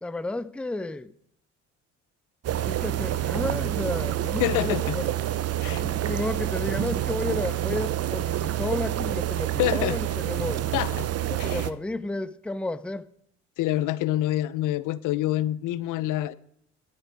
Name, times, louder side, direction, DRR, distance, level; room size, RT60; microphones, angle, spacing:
voice 1, 0.0-1.1 2.7-5.2 5.8-10.7 11.3-13.1, left 2 dB, 5° left, 0.6 m, -32 dB
sound 1, 2.4-11.7, right 12 dB, 45° right, 0.9 m, -28 dB
voice 2, 4.4-5.0 5.6-6.1 9.6-10.0 10.7-11.1 11.4-11.7 13.6-16.3, left 14 dB, 60° left, 0.7 m, -27 dB
12.5 x 12.5 x 4.8 m
hypercardioid pair, 70°, 34 cm